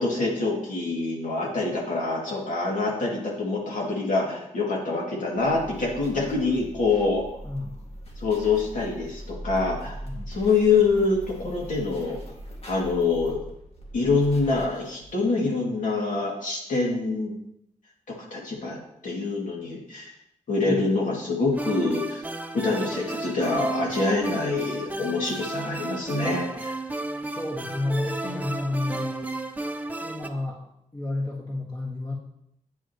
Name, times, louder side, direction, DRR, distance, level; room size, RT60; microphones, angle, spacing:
voice 1, 0.0-7.2 8.2-10.0 10.3-12.2 12.7-13.4 13.9-17.3 18.3-18.8 19.0-20.1 20.5-22.2 22.5-26.7, left 3 dB, 75° left, -3 dB, 2.4 m, -25 dB
sound 1, 5.4-15.3, equal, 50° left, 2.1 m, -41 dB
voice 2, 7.4-7.8 10.0-10.3 20.6-20.8 27.3-29.1 30.0-30.6 30.9-32.1, left 2 dB, 30° left, -3 dB, 1.6 m, -30 dB
sound 2, 21.5-30.3, right 2 dB, 10° right, 0.6 m, -33 dB
8.9 x 8.5 x 3.0 m, 0.77 s
wide cardioid pair, 135°, 13 cm